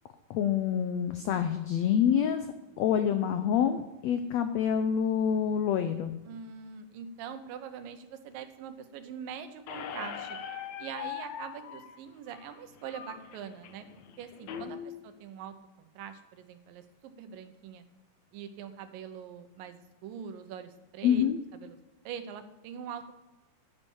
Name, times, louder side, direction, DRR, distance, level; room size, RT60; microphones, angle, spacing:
voice 1, 0.3-2.5 2.8-6.1 14.5-15.0 21.0-21.4, left 8 dB, 90° left, 9 dB, 1.5 m, -27 dB
voice 2, 6.3-10.4 10.8-13.8 14.2-17.8 18.3-21.3 21.6-21.8 22.0-23.1, right 8 dB, 90° right, 9 dB, 2.7 m, -43 dB
Squeak, 9.7-14.7, left 8 dB, 70° left, 2.0 m, -42 dB
9.9 x 9.7 x 7.2 m, 1.0 s
omnidirectional pair, 3.9 m